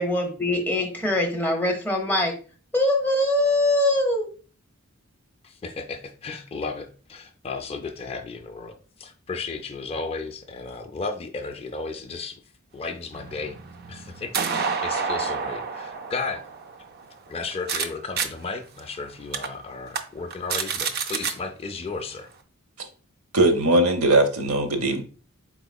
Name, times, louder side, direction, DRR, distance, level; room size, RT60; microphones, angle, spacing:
voice 1, 0.0-2.3 2.7-4.3, left 1 dB, 10° left, 1 dB, 0.8 m, -23 dB
voice 2, 5.4-12.4 12.7-13.6 13.9-16.4 17.3-22.3, left 4 dB, 30° left, 6 dB, 0.4 m, -34 dB
sound 1, 13.1-17.9 18.2-18.3 18.8-18.9 19.3-19.5 19.9-20.0 20.3-21.3, right 6 dB, 50° right, 0.4 m, -29 dB
voice 3, 23.3-25.0, right 2 dB, 75° right, 6 dB, 0.8 m, -20 dB
4.2 x 3.9 x 2.2 m, 0.38 s
head